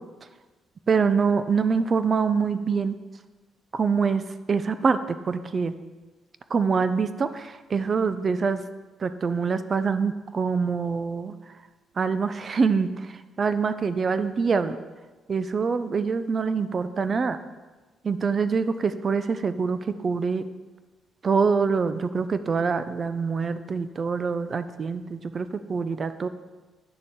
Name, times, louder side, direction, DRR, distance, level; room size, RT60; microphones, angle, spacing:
voice 1, 0.9-2.9 3.7-4.2 4.5-5.7 6.5-8.6 9.0-11.3 12.0-14.8 15.3-17.4 18.0-20.4 21.2-26.3, right 5 dB, 40° right, 12 dB, 0.5 m, -25 dB
9.6 x 6.7 x 3.7 m, 1.3 s
cardioid pair, 90°, 0 cm